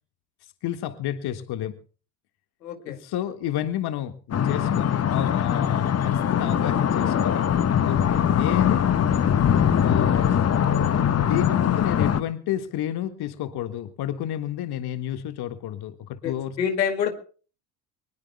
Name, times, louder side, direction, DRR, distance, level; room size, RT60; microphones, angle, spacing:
voice 1, 0.6-1.8 2.9-4.1 4.4-7.5 7.8-8.9 9.7-10.3 11.2-16.6, left 11 dB, 50° left, 9 dB, 1.7 m, -30 dB
voice 2, 2.6-3.0 16.2-16.3 16.6-17.1, left 7 dB, 85° left, 7 dB, 2.3 m, -26 dB
sound 1, 4.3-12.2, left 8 dB, 30° left, 1.2 m, -22 dB
24.5 x 20.5 x 2.2 m, 0.39 s
hypercardioid pair, 65°, 49 cm